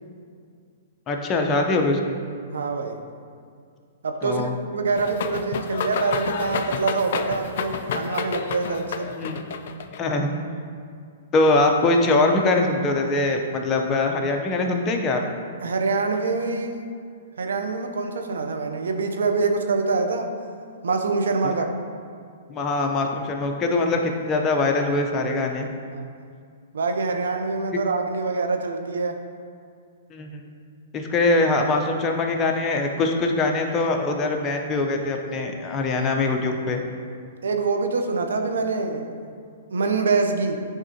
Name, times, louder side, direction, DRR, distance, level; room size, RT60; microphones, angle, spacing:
voice 1, 1.1-2.2 4.2-4.5 9.1-9.4 9.9-10.3 11.3-15.2 22.5-25.7 30.1-30.5 30.9-36.8, left 2 dB, 25° left, 2 dB, 0.7 m, -22 dB
voice 2, 2.5-3.0 4.0-9.1 15.6-16.9 17.4-20.3 20.8-21.7 25.9-26.1 26.7-29.2 37.4-39.2 39.7-40.6, right 4 dB, 80° right, 5 dB, 0.6 m, -25 dB
sound 1, 5.0-10.0, left 6 dB, 60° left, 0.4 m, -30 dB
9.8 x 3.6 x 2.8 m, 2.2 s
hypercardioid pair, 135°, 0 cm